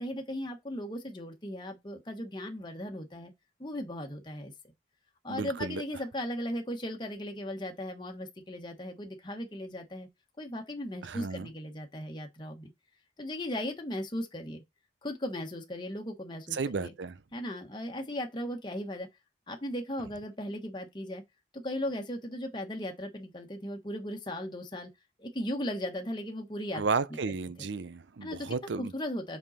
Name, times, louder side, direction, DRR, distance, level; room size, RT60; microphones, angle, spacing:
voice 1, 0.0-3.3 3.6-4.7 5.2-10.1 10.4-12.7 13.2-14.6 15.0-16.9 17.3-19.1 19.5-21.2 21.5-24.9 25.2-26.8 28.2-29.4, left 1 dB, 25° left, 1.3 m, -37 dB
voice 2, 5.3-5.8 11.0-11.5 16.5-17.2 26.7-28.9, right 4 dB, 85° right, 0.6 m, -33 dB
5.5 x 5.3 x 4.2 m
head